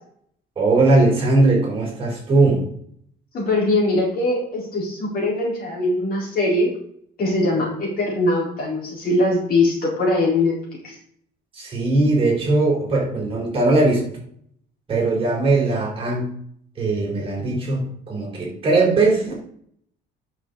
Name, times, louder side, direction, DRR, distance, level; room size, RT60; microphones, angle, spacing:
voice 1, 0.6-2.7 11.5-14.0 14.9-16.3 16.8-19.3, right 2 dB, 30° right, -3 dB, 4.2 m, -19 dB
voice 2, 3.3-6.7 7.2-10.5 10.8-11.0, left 2 dB, 50° left, -3 dB, 4.3 m, -21 dB
9.7 x 6.9 x 4.0 m, 0.65 s
cardioid pair, 135°, 19 cm